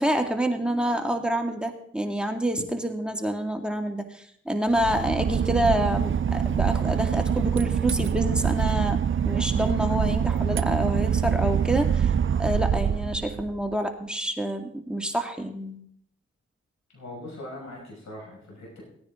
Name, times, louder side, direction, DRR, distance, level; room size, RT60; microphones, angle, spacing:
voice 1, 0.0-12.1 12.4-15.8, right 1 dB, 5° right, 3 dB, 2.1 m, -27 dB
Boat Water vehicle / Engine, 4.7-13.7, right 8 dB, 45° right, 0.5 m, -25 dB
voice 2, 16.9-18.8, left 1 dB, 70° left, -3 dB, 6.1 m, -41 dB
17.0 x 9.7 x 3.8 m, 0.68 s
supercardioid pair, 40°, 30 cm